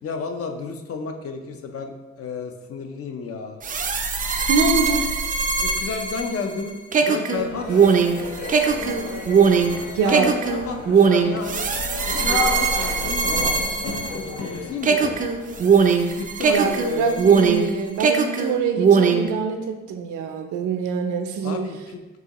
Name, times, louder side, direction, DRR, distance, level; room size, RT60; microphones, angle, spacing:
voice 1, 0.0-3.6 5.6-8.0 10.0-11.7 12.1-15.2 16.2-17.2 21.4-22.2, left 4 dB, 50° left, 5 dB, 0.5 m, -32 dB
sound 1, 3.6-14.5 14.8-17.7 18.0-19.3, right 5 dB, 30° right, 0.4 m, -20 dB
voice 2, 4.5-5.0 9.9-10.4 16.5-21.6, right 5 dB, 80° right, 6 dB, 0.6 m, -25 dB
sound 2, 7.3-15.6, left 3 dB, 75° left, 0.8 m, -32 dB
4.7 x 2.8 x 2.9 m, 1.2 s
cardioid pair, 90°, 30 cm